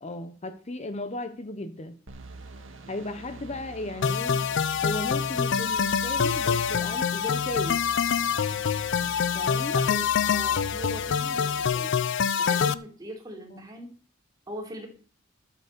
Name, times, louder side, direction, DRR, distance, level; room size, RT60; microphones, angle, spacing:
voice 1, 0.0-2.0 2.9-4.4 4.8-7.8 9.3-9.8 13.5-13.6, left 2 dB, 35° left, 9 dB, 0.8 m, -35 dB
sound 1, 2.1-11.7, right 3 dB, 70° right, 1.8 m, -45 dB
sound 2, 4.0-12.7, left 7 dB, 60° left, 0.5 m, -25 dB
voice 2, 9.7-12.0 12.4-13.9 14.5-14.9, right 1 dB, 20° right, 0 dB, 3.3 m, -40 dB
11.5 x 8.0 x 6.7 m, 0.43 s
head